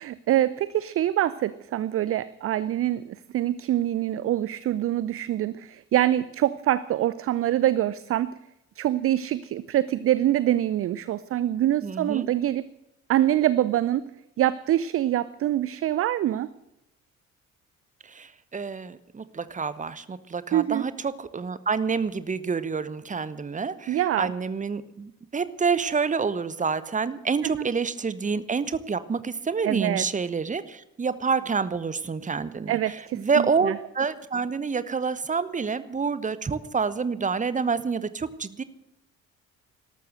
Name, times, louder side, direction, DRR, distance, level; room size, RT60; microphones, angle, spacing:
voice 1, 0.0-8.4 8.8-12.7 13.1-14.1 14.4-16.5 20.5-20.8 23.9-24.3 27.4-27.7 29.6-30.0 32.7-33.8, right 13 dB, 35° right, 18 dB, 0.5 m, -25 dB
voice 2, 11.8-12.3 18.0-38.6, right 5 dB, 20° right, 16 dB, 1.0 m, -28 dB
13.0 x 13.0 x 7.9 m, 0.88 s
figure-of-eight pair, 45°, 41 cm